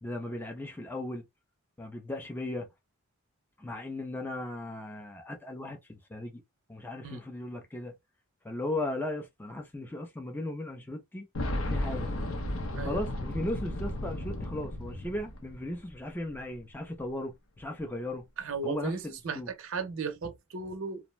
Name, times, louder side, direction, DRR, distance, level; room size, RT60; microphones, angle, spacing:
voice 1, 0.0-1.2 1.8-2.7 3.6-6.4 6.7-7.9 8.4-11.3 11.6-12.1 12.7-18.2 18.6-19.5, left 1 dB, 10° left, 0.4 m, -37 dB
Boom, 11.3-16.1 16.3-16.4 17.6-17.7, left 1 dB, 65° left, 0.6 m, -34 dB
voice 2, 18.4-19.0 19.2-21.0, right 4 dB, 60° right, 0.5 m, -35 dB
2.5 x 2.0 x 3.0 m
head